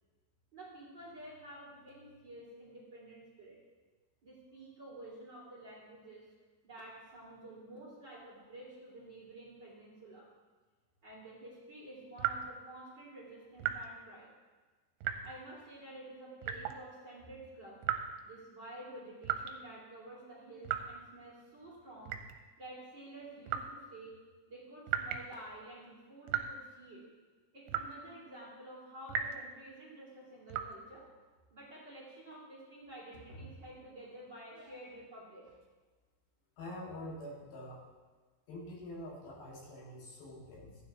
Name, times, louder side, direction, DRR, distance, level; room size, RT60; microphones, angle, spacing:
voice 1, 0.5-3.6 4.2-6.2 6.6-10.3 11.0-14.3 15.2-17.8 18.2-22.2 22.6-24.2 24.5-27.0 27.5-31.1 31.5-35.5, right 1 dB, 30° right, -7 dB, 2.5 m, -50 dB
sound 1, 12.2-12.6 13.6-13.9 15.0-15.4 16.4-16.8 17.8-18.3 19.2-19.5 20.7-21.0 22.1-22.4 23.5-23.7 24.9-25.3 26.3-26.6 27.7-28.0 29.1-29.4 30.5-30.7, right 9 dB, 85° right, 2.8 m, -36 dB
voice 2, 36.6-37.8 38.5-40.9, left 1 dB, 65° left, -4 dB, 3.7 m, -46 dB
15.0 x 9.5 x 2.9 m, 1.3 s
omnidirectional pair, 4.9 m